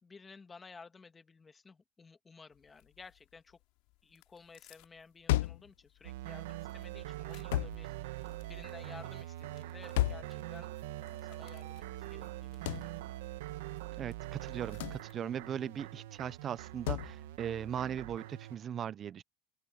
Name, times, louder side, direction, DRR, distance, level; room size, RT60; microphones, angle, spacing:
voice 1, 0.0-3.6 4.0-10.7 11.0-13.0, left 4 dB, 15° left, 1.6 m, -55 dB
sound 1, 2.5-17.9, left 23 dB, 60° left, 4.9 m, -67 dB
sound 2, 5.3-5.7 7.5-7.8 10.0-10.3 12.7-12.9 14.8-15.0 16.9-17.1, left 16 dB, 85° left, 0.4 m, -31 dB
sound 3, 6.0-18.6, right 15 dB, 90° right, 1.3 m, -43 dB
voice 2, 14.0-19.2, right 9 dB, 30° right, 0.6 m, -39 dB
open air
supercardioid pair, 150°, 0 cm